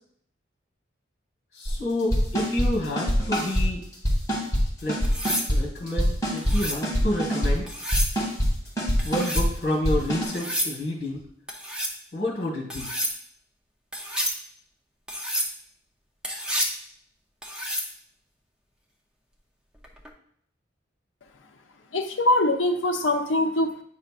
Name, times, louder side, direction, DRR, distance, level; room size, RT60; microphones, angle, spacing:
voice 1, 1.5-3.8 4.8-5.0 5.5-7.7 9.0-11.2 12.1-12.9, left 1 dB, 60° left, -2 dB, 1.5 m, -29 dB
sound 1, 1.7-1.8 2.1-2.7 3.0-3.7 3.9-4.6 4.9-5.6 5.9-7.6 7.9-8.5 8.8-9.5 9.8-10.2, equal, 20° left, 2.1 m, -23 dB
sound 2, 5.0-5.5 6.4-6.8 7.7-8.2 9.0-9.5 10.3-10.7 11.5-12.0 12.7-13.2 13.9-14.4 15.1-15.5 16.2-16.8 17.4-17.9 19.8-20.1, equal, 5° right, 0.7 m, -29 dB
voice 2, 21.9-23.8, left 1 dB, 80° left, 4 dB, 0.6 m, -23 dB
9.0 x 5.4 x 2.5 m, 0.66 s
head